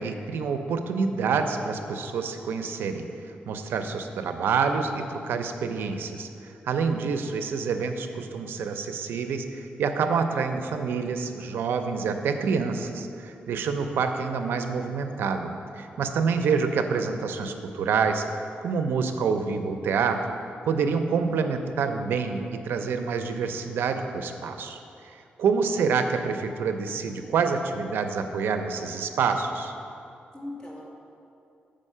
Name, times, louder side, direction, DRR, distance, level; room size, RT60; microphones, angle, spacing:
voice 1, 0.0-3.1 3.5-6.3 6.6-18.2 18.6-20.3 20.6-24.8 25.1-29.7, right 5 dB, 85° right, 7 dB, 0.5 m, -27 dB
voice 2, 30.3-30.9, left 1 dB, 20° left, -4 dB, 1.7 m, -41 dB
7.3 x 5.2 x 5.5 m, 2.6 s
cardioid pair, 100°, 4 cm